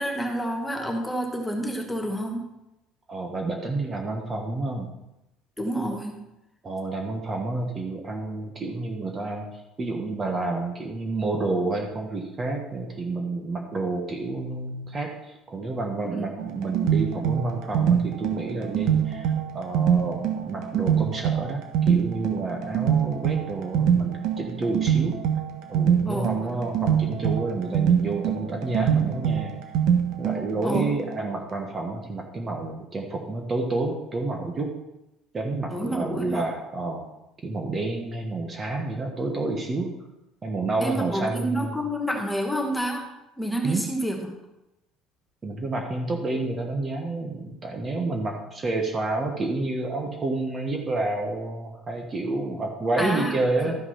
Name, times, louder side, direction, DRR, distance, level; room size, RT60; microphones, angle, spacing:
voice 1, 0.0-2.4 5.6-6.2 16.0-16.2 26.0-26.3 30.6-30.8 35.7-36.4 40.8-43.1 43.4-44.2 53.0-53.7, right 1 dB, 5° left, 2 dB, 1.5 m, -29 dB
voice 2, 3.1-4.9 6.6-9.5 9.8-19.3 19.5-25.2 25.7-29.5 30.2-34.7 35.3-37.1 37.4-39.9 40.4-41.8 43.6-43.8 45.4-53.8, right 2 dB, 20° right, 3 dB, 1.2 m, -29 dB
sound 1, 16.4-31.3, right 8 dB, 65° right, 1.5 m, -25 dB
13.0 x 5.8 x 5.7 m, 0.91 s
cardioid pair, 165°, 0 cm